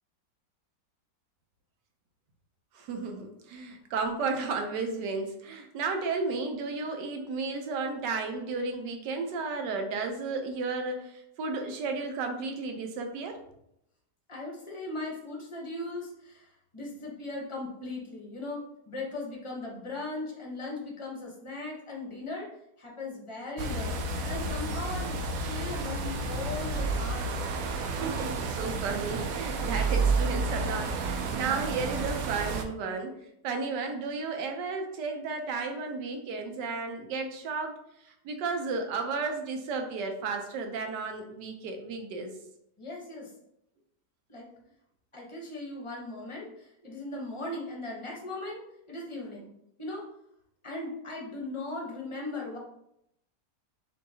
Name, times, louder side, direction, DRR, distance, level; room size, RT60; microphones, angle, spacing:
voice 1, 2.7-13.4 27.8-37.7 38.0-42.3, right 4 dB, 90° right, 5 dB, 1.3 m, -33 dB
voice 2, 14.3-22.5 22.8-27.5 42.8-43.3 44.3-44.5 45.1-49.5 49.8-50.0 50.6-52.6, left 2 dB, 30° left, -2 dB, 0.6 m, -38 dB
sound 1, 23.6-32.6, right 3 dB, 70° right, 0.9 m, -31 dB
6.2 x 2.7 x 2.7 m, 0.77 s
omnidirectional pair, 1.8 m